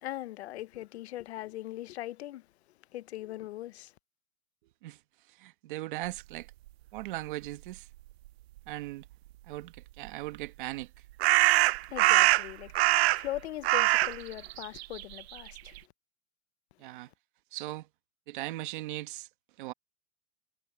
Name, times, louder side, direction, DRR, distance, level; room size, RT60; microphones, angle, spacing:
voice 1, 0.0-2.5 2.9-3.9 11.9-15.8, left 15 dB, 75° left, 0.9 m, -40 dB
voice 2, 5.4-6.5 6.9-7.9 8.7-9.0 9.5-10.9 16.8-17.1 17.5-17.9 18.3-19.3 19.6-19.7, right 17 dB, 50° right, 1.4 m, -38 dB
sound 1, 10.1-10.2 11.2-13.4 13.6-15.8, right 17 dB, 70° right, 0.5 m, -23 dB
supercardioid pair, 175°, 33 cm